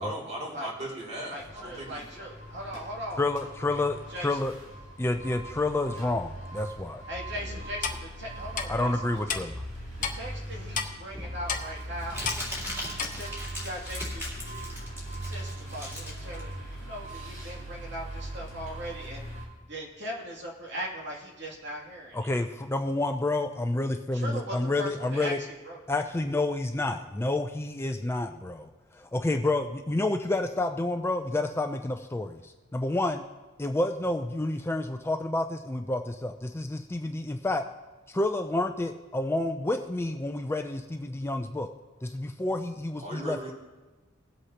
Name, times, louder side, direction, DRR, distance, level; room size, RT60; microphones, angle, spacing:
voice 1, 0.0-2.3 7.3-7.6 43.0-43.5, right 1 dB, 35° right, -3 dB, 2.7 m, -38 dB
voice 2, 1.3-3.8 4.1-4.4 7.1-9.0 9.3-9.4 10.1-12.2 13.0-14.8 15.1-19.2 19.7-22.1 24.1-25.8, equal, 60° right, -2 dB, 2.6 m, -39 dB
sound 1, 1.4-19.5, right 1 dB, 80° right, 4.1 m, -40 dB
voice 3, 3.2-4.5 5.0-7.0 8.7-9.5 22.1-25.4 25.9-33.2 33.6-37.6 38.1-41.7 42.0-43.5, left 2 dB, 10° left, 6 dB, 0.4 m, -29 dB
Clock, 7.8-8.0 8.6-8.7 9.3-9.4 10.0-10.2 10.8-10.9 11.5-11.7 12.3-12.4 13.0-13.1, left 6 dB, 40° left, 0.9 m, -30 dB
Crumpling crinkling, 10.6-17.6, left 1 dB, 10° right, 3.5 m, -39 dB
20.0 x 8.1 x 2.9 m, 1.2 s
head